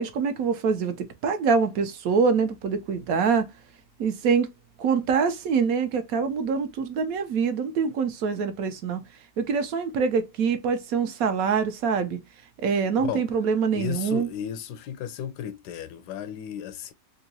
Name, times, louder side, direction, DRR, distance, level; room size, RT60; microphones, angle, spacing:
voice 1, 0.0-3.5 4.0-4.5 4.8-9.0 9.4-12.2 12.6-14.3, right 5 dB, 70° right, 1.0 m, -25 dB
voice 2, 13.7-16.9, left 9 dB, 90° left, 1.2 m, -34 dB
3.8 x 2.6 x 2.7 m
omnidirectional pair, 1.7 m